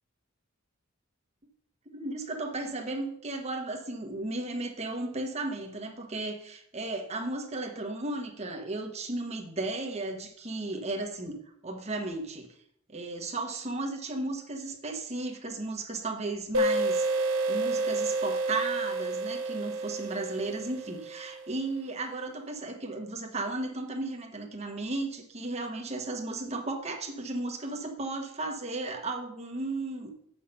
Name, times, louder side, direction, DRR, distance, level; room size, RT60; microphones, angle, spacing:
voice 1, 1.9-11.4 11.6-12.5 12.9-30.1, right 2 dB, 30° right, 3 dB, 1.4 m, -35 dB
sound 1, 16.5-21.9, right 2 dB, 75° right, 1.0 m, -30 dB
8.3 x 6.3 x 5.6 m, 0.70 s
head